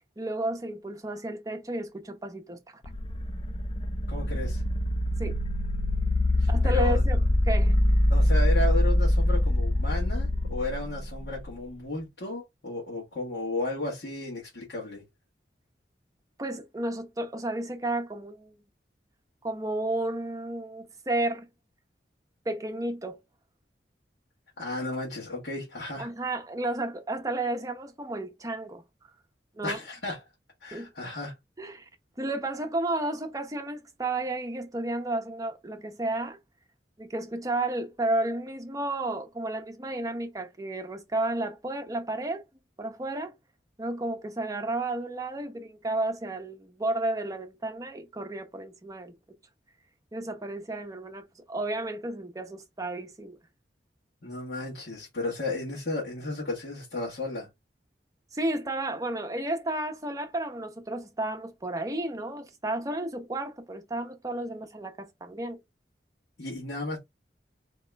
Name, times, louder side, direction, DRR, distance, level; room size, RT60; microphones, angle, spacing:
voice 1, 0.2-2.8 5.2-5.4 6.5-7.2 7.5-7.7 16.4-18.5 19.4-21.5 22.5-23.2 26.0-28.8 29.6-29.8 30.7-30.9 31.6-31.8 32.2-36.4 37.0-42.4 42.8-43.3 43.8-49.1 50.1-53.4 58.3-65.6, right 2 dB, 20° right, 0.7 m, -32 dB
sound 1, 2.8-11.6, left 1 dB, 30° left, 0.4 m, -24 dB
voice 2, 4.1-4.6 6.4-7.0 8.1-15.0 24.6-26.1 29.6-30.2 30.6-31.3 54.2-57.5 66.4-67.0, left 2 dB, 65° left, 1.5 m, -33 dB
3.6 x 2.9 x 3.3 m
head